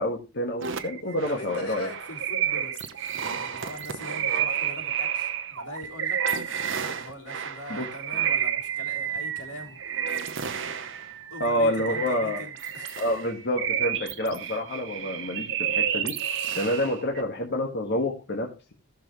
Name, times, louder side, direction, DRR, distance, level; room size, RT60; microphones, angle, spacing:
voice 1, 0.0-1.9 7.7-7.9 11.4-12.4 13.0-16.2 16.6-18.7, left 1 dB, 50° left, 0 dB, 1.7 m, -28 dB
sound 1, 0.6-17.2, right 8 dB, 55° right, 0.9 m, -30 dB
voice 2, 1.3-6.4 6.9-10.1 11.3-13.0, left 1 dB, 85° left, -1 dB, 3.7 m, -42 dB
15.0 x 6.9 x 3.1 m, 0.28 s
head